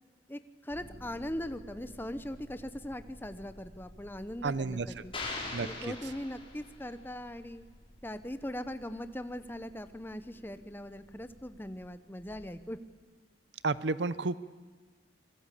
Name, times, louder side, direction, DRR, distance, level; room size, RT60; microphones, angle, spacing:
voice 1, 0.3-5.1 5.6-7.7 8.0-12.8, left 1 dB, 10° left, 11 dB, 0.9 m, -40 dB
sound 1, 0.7-12.6, equal, 25° right, 6.5 m, -55 dB
voice 2, 4.4-4.9 5.5-5.7 13.6-14.3, right 3 dB, 75° right, 16 dB, 0.7 m, -30 dB
sound 2, 5.1-6.9, left 3 dB, 30° left, 4.5 m, -40 dB
27.0 x 21.0 x 8.5 m, 1.4 s
head